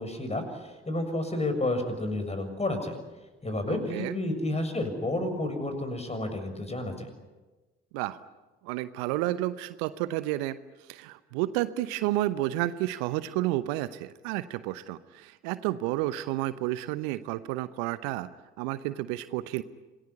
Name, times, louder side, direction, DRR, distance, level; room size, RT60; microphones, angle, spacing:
voice 1, 0.0-2.9 3.4-7.1, left 1 dB, 20° left, 8 dB, 6.9 m, -31 dB
voice 2, 3.7-4.1 7.9-8.2 8.6-10.6 10.9-18.3 18.6-19.6, right 16 dB, 65° right, 15 dB, 0.9 m, -31 dB
27.0 x 19.5 x 9.8 m, 1.2 s
figure-of-eight pair, 50°, 32 cm